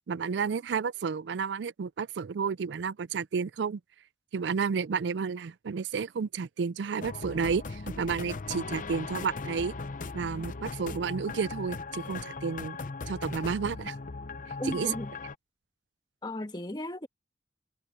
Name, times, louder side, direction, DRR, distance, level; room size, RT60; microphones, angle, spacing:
voice 1, 0.1-3.8 4.3-9.7 10.1-12.8 13.1-13.9 14.7-14.9, right 6 dB, 85° right, 0.4 m, -31 dB
sound 1, 7.0-15.3, left 3 dB, 50° left, 0.7 m, -38 dB
voice 2, 14.6-15.1 16.2-17.1, left 1 dB, 25° left, 1.4 m, -35 dB
head